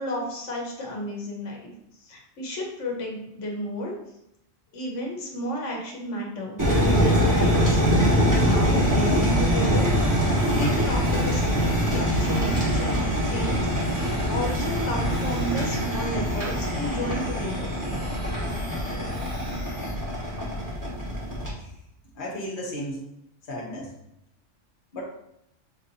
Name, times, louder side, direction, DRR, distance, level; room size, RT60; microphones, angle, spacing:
voice 1, 0.0-3.9 4.7-17.8, equal, 90° left, -1 dB, 1.2 m, -33 dB
sound 1, 6.6-21.5, equal, 15° right, 1.1 m, -23 dB
sound 2, 8.9-19.9, left 2 dB, 25° left, 0.5 m, -40 dB
voice 2, 22.1-23.1 23.4-23.9 24.9-25.0, equal, 50° left, -2 dB, 1.1 m, -34 dB
5.8 x 2.8 x 2.6 m, 0.81 s
omnidirectional pair, 1.2 m